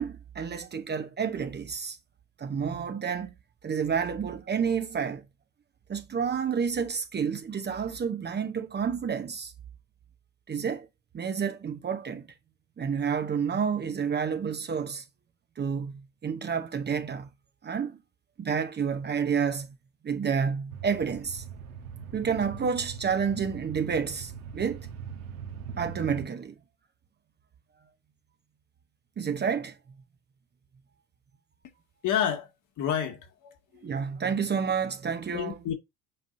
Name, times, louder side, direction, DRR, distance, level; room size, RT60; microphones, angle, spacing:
voice 1, 0.0-2.0 2.4-3.3 3.6-5.2 5.9-9.5 10.5-10.9 11.1-12.3 12.8-15.0 15.6-17.3 17.6-18.0 18.4-19.8 20.0-21.4 22.1-24.9 25.8-26.5 29.2-29.8 33.8-35.6, right 6 dB, 25° right, 0.9 m, -29 dB
sound 1, 20.7-26.3, right 6 dB, 75° right, 1.3 m, -41 dB
voice 2, 32.0-32.5 32.8-33.9 35.3-35.7, left 9 dB, 45° left, 1.7 m, -30 dB
7.8 x 5.3 x 2.6 m
figure-of-eight pair, 65°, 42 cm